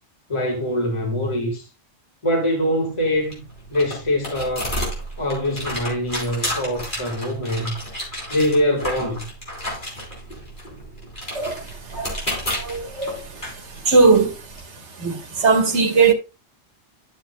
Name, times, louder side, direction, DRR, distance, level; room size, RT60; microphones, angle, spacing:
voice 1, 0.3-1.7 2.2-4.7 5.2-7.8 8.3-9.3, equal, 25° left, 1.8 m, -23 dB
sound 1, 2.9-14.6, equal, 40° left, 4.1 m, -32 dB
voice 2, 12.6-13.2 13.9-14.3 15.0-15.2 15.4-16.1, right 4 dB, 65° right, 1.7 m, -17 dB
11.5 x 7.2 x 2.2 m
omnidirectional pair, 1.3 m